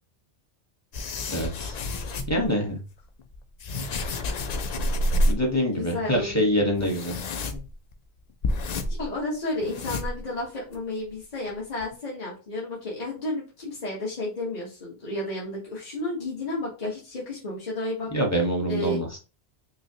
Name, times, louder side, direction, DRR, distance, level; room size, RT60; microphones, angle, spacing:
sound 1, 0.9-2.5 3.2-5.6 5.8-5.9 6.1-6.3 6.8-7.9 8.4-9.2 9.5-10.4 10.7-10.8 11.5-11.6 11.8-11.9, left 1 dB, 60° left, 0.4 m, -28 dB
voice 1, 1.3-1.8 2.3-2.8 5.3-7.2 7.5-7.6 18.1-19.2, equal, 15° left, 0 dB, 1.0 m, -25 dB
voice 2, 5.5-6.4 6.8-6.9 8.9-18.1 18.7-19.0, left 2 dB, 40° left, -5 dB, 1.3 m, -32 dB
5.4 x 2.2 x 2.8 m, 0.32 s
omnidirectional pair, 1.2 m